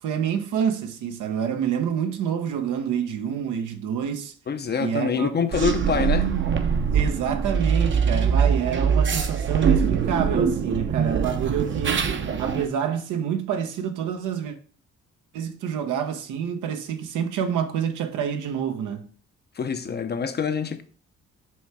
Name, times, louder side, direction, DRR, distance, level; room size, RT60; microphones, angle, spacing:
voice 1, 0.0-4.3 4.8-5.4 6.9-12.1 12.4-14.6 15.3-19.0, right 8 dB, 80° right, 0.9 m, -27 dB
voice 2, 4.5-6.3 19.6-20.8, left 6 dB, 35° left, 0.6 m, -25 dB
sound 1, 5.5-12.7, right 7 dB, 40° right, 0.7 m, -23 dB
6.2 x 3.3 x 4.7 m
cardioid pair, 90°, 30 cm